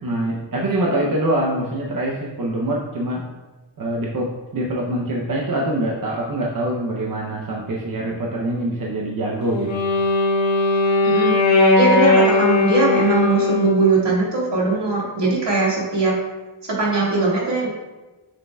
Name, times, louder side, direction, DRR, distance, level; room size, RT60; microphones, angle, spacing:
voice 1, 0.0-3.3 3.8-9.7, right 1 dB, 50° right, -2 dB, 0.8 m, -24 dB
Wind instrument woodwind instrument, 9.4-14.0, left 3 dB, 90° left, 1.4 m, -18 dB
voice 2, 11.0-11.3 11.8-16.2 16.6-17.7, right 3 dB, 70° right, -4 dB, 2.1 m, -20 dB
6.7 x 6.4 x 2.3 m, 1.1 s
wide cardioid pair, 125°, 45 cm